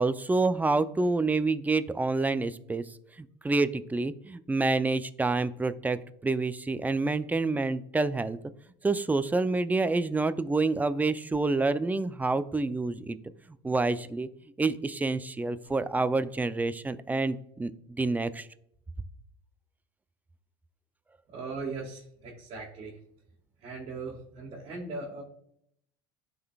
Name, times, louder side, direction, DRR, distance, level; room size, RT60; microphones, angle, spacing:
voice 1, 0.0-2.8 3.4-8.4 8.8-13.2 13.6-14.3 14.6-17.7 18.0-18.5, right 3 dB, 10° right, 13 dB, 0.4 m, -27 dB
voice 2, 21.3-23.0 23.6-25.2, right 3 dB, 50° right, -2 dB, 1.6 m, -39 dB
11.5 x 3.9 x 2.4 m, 0.72 s
hypercardioid pair, 85°, 13 cm